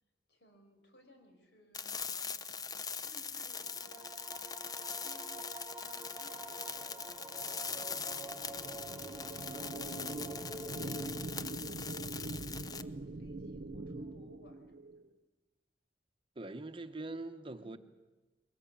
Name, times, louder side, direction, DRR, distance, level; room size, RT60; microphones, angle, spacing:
voice 1, 0.3-4.1 4.7-5.3 5.7-10.4 11.0-15.0 17.5-17.8, left 1 dB, 75° left, 5.0 m, -62 dB
sound 1, 1.7-12.8, left 6 dB, 20° left, 0.7 m, -42 dB
sound 2, 3.4-11.6, right 2 dB, 10° right, 1.8 m, -49 dB
sound 3, 6.3-15.1, right 2 dB, 60° right, 1.0 m, -44 dB
voice 2, 16.4-17.8, right 2 dB, 30° right, 0.9 m, -42 dB
22.0 x 19.0 x 8.8 m
head